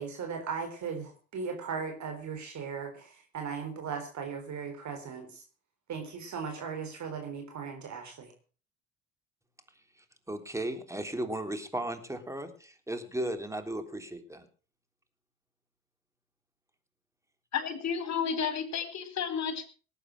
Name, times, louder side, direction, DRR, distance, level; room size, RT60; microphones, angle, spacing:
voice 1, 0.0-5.4 5.9-8.3, right 6 dB, 50° right, 4 dB, 4.0 m, -37 dB
voice 2, 10.3-14.5, right 1 dB, 10° right, 7 dB, 3.4 m, -35 dB
voice 3, 17.5-19.6, left 7 dB, 45° left, 9 dB, 4.2 m, -32 dB
18.5 x 9.0 x 6.0 m, 0.38 s
hypercardioid pair, 65°, 37 cm